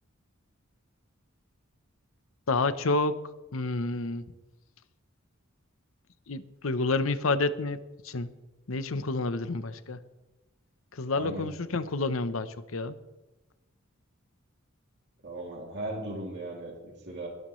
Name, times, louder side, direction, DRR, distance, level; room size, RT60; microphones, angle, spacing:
voice 1, 2.5-3.2 3.5-4.3 6.3-7.8 8.0-8.3 8.7-10.0 10.9-13.0, left 3 dB, 75° left, 12 dB, 0.8 m, -29 dB
voice 2, 11.1-11.5 15.2-17.3, right 1 dB, 55° right, -2 dB, 2.8 m, -37 dB
22.0 x 12.0 x 3.2 m, 1.1 s
head